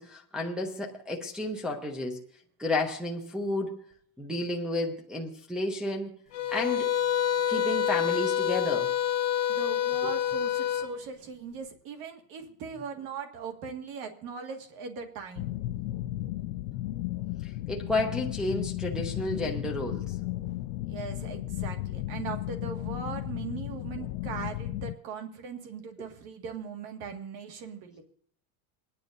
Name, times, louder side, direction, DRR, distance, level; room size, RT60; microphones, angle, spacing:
voice 1, 0.0-2.2 2.6-3.8 4.2-6.1 6.5-6.9 7.5-8.9 10.0-10.1 17.4-20.2, left 2 dB, ahead, 0.8 m, -31 dB
sound 1, 6.3-10.9, left 10 dB, 35° left, 1.0 m, -27 dB
voice 2, 9.5-15.5 20.9-28.0, right 5 dB, 50° right, 1.9 m, -39 dB
sound 2, 15.4-24.9, left 15 dB, 80° left, 0.5 m, -34 dB
27.5 x 10.0 x 2.6 m
supercardioid pair, 160°, 43 cm